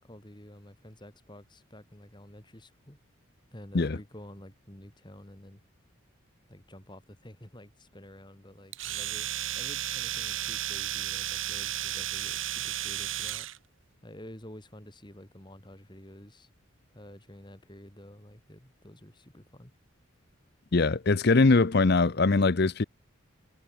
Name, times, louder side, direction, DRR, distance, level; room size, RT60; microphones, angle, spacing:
voice 1, 0.0-3.0 3.5-5.6 6.5-9.3 9.6-13.5 14.0-16.5 16.9-19.7, left 1 dB, 20° left, 3.6 m, -50 dB
Domestic sounds home sounds, 8.7-13.6, right 12 dB, 65° right, 1.9 m, -33 dB
voice 2, 20.7-22.8, left 3 dB, 50° left, 0.7 m, -22 dB
head